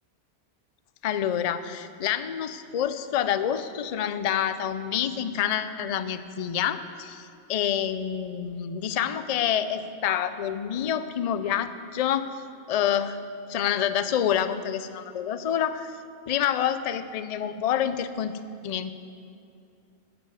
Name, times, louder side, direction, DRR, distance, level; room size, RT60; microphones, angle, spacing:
voice 1, 1.0-12.3 12.7-13.2 13.5-15.9 16.3-18.3 18.6-18.9, left 9 dB, 50° left, 12 dB, 0.4 m, -27 dB
11.5 x 6.0 x 9.2 m, 2.5 s
omnidirectional pair, 1.1 m